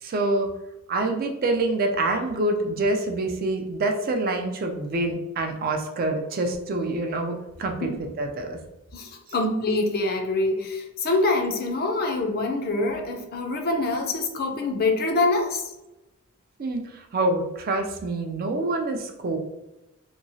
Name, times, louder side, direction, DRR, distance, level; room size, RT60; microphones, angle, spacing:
voice 1, 0.0-0.5 0.9-7.9 8.2-8.6 16.6-19.4, right 2 dB, 40° right, 4 dB, 0.3 m, -26 dB
voice 2, 8.9-15.7, left 2 dB, 45° left, 3 dB, 0.4 m, -25 dB
2.9 x 2.3 x 2.6 m, 0.95 s
head